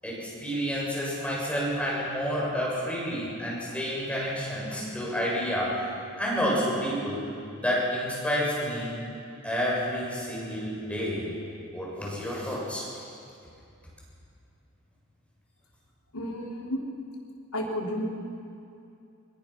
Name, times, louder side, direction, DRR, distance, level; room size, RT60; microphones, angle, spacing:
voice 1, 0.0-5.8 6.2-7.3 7.6-9.0 9.4-11.3 11.7-12.9, equal, 5° left, -5 dB, 7.2 m, -29 dB
voice 2, 16.1-16.8 17.5-18.0, equal, 85° left, -1 dB, 3.6 m, -32 dB
24.0 x 22.0 x 6.1 m, 2.6 s
head